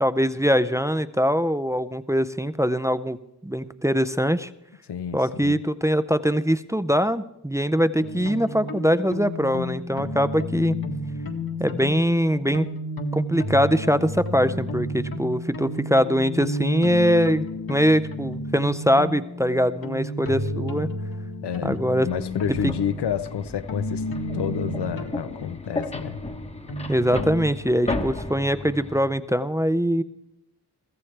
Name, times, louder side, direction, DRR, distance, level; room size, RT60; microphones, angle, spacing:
voice 1, 0.0-3.2 3.4-4.5 5.1-10.8 11.6-12.7 13.1-20.9 21.6-22.1 26.9-30.0, equal, 10° right, 0.4 m, -22 dB
voice 2, 4.9-5.6 11.8-11.9 21.4-24.0 24.3-26.2, left 8 dB, 85° left, 0.7 m, -30 dB
sound 1, 8.0-27.5, left 1 dB, 60° left, 1.7 m, -32 dB
sound 2, 22.0-29.0, left 2 dB, 15° left, 1.0 m, -34 dB
21.5 x 15.0 x 3.3 m
wide cardioid pair, 115°, 40 cm